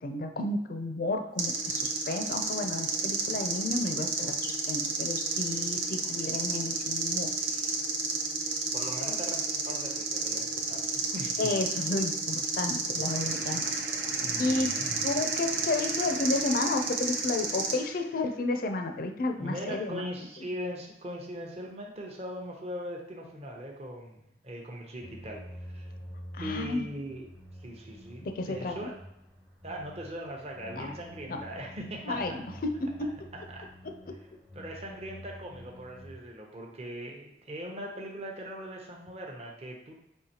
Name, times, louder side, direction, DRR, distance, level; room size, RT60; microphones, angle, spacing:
voice 1, 0.0-7.3 9.1-9.2 11.4-13.6 14.4-14.7 15.0-20.0 26.3-26.9 28.2-28.9 30.7-30.9 31.3-31.4 32.0-32.7, left 2 dB, 50° left, 5 dB, 0.4 m, -32 dB
sound 1, 1.4-17.7, right 4 dB, 75° right, 0.8 m, -31 dB
voice 2, 8.7-11.5 14.2-15.0 19.4-25.4 25.7-25.9 26.4-27.3 27.6-28.9 29.6-32.4 33.5-33.7 34.5-39.9, equal, 35° right, -1 dB, 0.7 m, -40 dB
sound 2, 13.0-18.4, right 5 dB, 60° right, 0.4 m, -43 dB
sound 3, 25.0-36.1, equal, 5° right, 0.5 m, -47 dB
5.5 x 3.0 x 2.8 m, 0.80 s
head